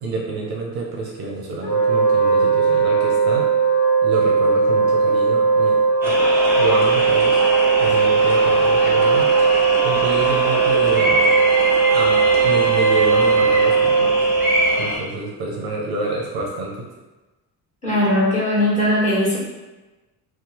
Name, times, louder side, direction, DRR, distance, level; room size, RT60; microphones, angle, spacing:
voice 1, 0.0-3.5 4.0-7.4 7.8-9.6 9.8-11.3 11.9-14.3 14.8-16.8, right 3 dB, 50° right, -2 dB, 0.6 m, -28 dB
Wind instrument woodwind instrument, 1.6-15.0, right 5 dB, 35° left, 1.2 m, -18 dB
sound 1, 6.0-15.0, equal, 5° right, 0.9 m, -24 dB
voice 2, 17.8-19.4, left 1 dB, 15° left, -8 dB, 1.5 m, -19 dB
2.7 x 2.1 x 2.9 m, 1.1 s
supercardioid pair, 70°, 47 cm